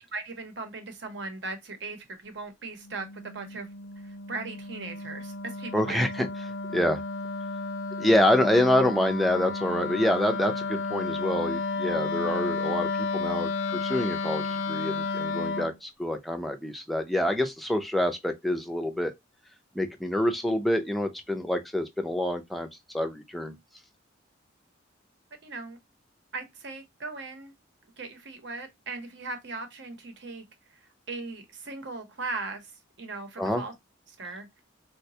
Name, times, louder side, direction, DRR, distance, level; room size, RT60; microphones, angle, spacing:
voice 1, 0.1-3.1 3.3-3.7 4.0-6.0 25.4-25.8 26.3-27.5 28.0-30.4 31.1-32.7 33.0-33.7 34.2-34.5, right 3 dB, 65° right, 0.8 m, -38 dB
Wind instrument woodwind instrument, 2.8-15.7, left 3 dB, 85° left, 0.5 m, -32 dB
voice 2, 5.7-6.3 6.7-7.0 8.0-19.1 19.7-22.7 22.9-23.5 33.4-33.6, left 1 dB, ahead, 0.4 m, -26 dB
3.9 x 2.2 x 2.7 m
head